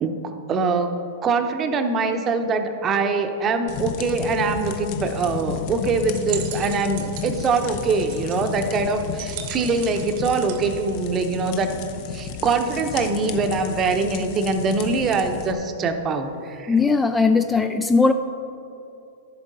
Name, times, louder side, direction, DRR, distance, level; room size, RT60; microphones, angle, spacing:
voice 1, 0.0-11.8 12.1-16.7, right 4 dB, 25° right, 7 dB, 0.8 m, -23 dB
sound 1, 3.7-15.5, left 7 dB, 50° left, 0.7 m, -33 dB
sound 2, 6.0-11.7, right 10 dB, 55° right, 0.9 m, -39 dB
voice 2, 16.7-18.1, left 4 dB, 10° left, 8 dB, 0.3 m, -18 dB
11.5 x 7.4 x 3.9 m, 2.8 s
hypercardioid pair, 125°, 0 cm